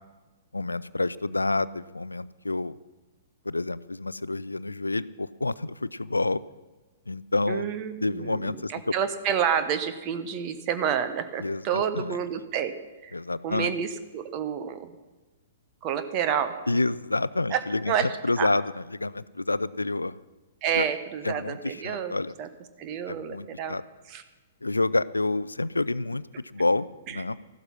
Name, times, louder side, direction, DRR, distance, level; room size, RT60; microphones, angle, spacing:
voice 1, 0.5-2.7 3.5-6.4 7.1-7.7 8.0-8.7 11.4-12.2 13.1-13.7 16.7-20.1 20.7-20.9 21.2-22.3 23.1-23.8 24.6-26.2 26.5-27.4, left 2 dB, 80° left, 18 dB, 0.4 m, -28 dB
voice 2, 7.5-12.7 13.0-13.1 13.4-14.9 15.8-16.5 17.5-18.1 18.4-18.5 20.6-22.1 22.4-22.5 22.8-23.8 24.1-24.2 27.1-27.2, right 8 dB, 30° right, 10 dB, 1.1 m, -29 dB
14.0 x 12.5 x 5.7 m, 1.2 s
figure-of-eight pair, 110°, 0 cm